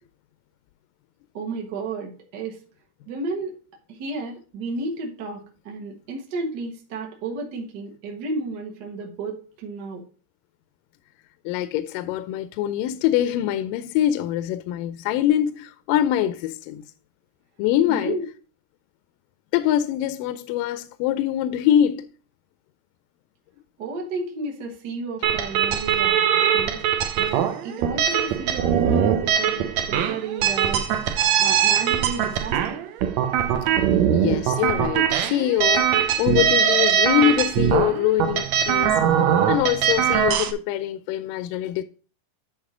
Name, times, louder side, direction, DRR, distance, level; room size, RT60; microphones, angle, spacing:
voice 1, 1.3-2.6 3.1-3.5 3.9-10.0 17.9-18.2 23.8-26.2 26.5-26.8 27.1-32.8, right 3 dB, 50° right, 1.2 m, -32 dB
voice 2, 11.5-16.8 17.6-18.2 19.5-22.1 34.1-35.9 36.2-39.0 39.5-41.8, left 12 dB, 85° left, 2.2 m, -23 dB
sound 1, 25.2-40.5, right 8 dB, 75° right, 1.7 m, -21 dB
10.0 x 3.8 x 4.8 m
omnidirectional pair, 3.9 m